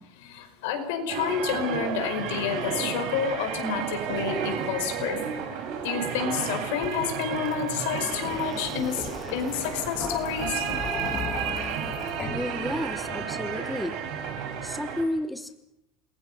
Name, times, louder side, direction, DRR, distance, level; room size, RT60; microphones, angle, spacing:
voice 1, 0.2-5.2 5.8-10.7, left 7 dB, 75° left, 6 dB, 5.4 m, -29 dB
sound 1, 1.1-15.0, right 7 dB, 50° right, 5.5 m, -32 dB
sound 2, 6.8-13.6, left 6 dB, 25° left, 2.2 m, -38 dB
voice 2, 12.3-14.0 14.6-15.5, left 1 dB, ahead, 9 dB, 1.0 m, -31 dB
28.5 x 22.5 x 5.6 m, 0.83 s
cardioid pair, 170°, 0 cm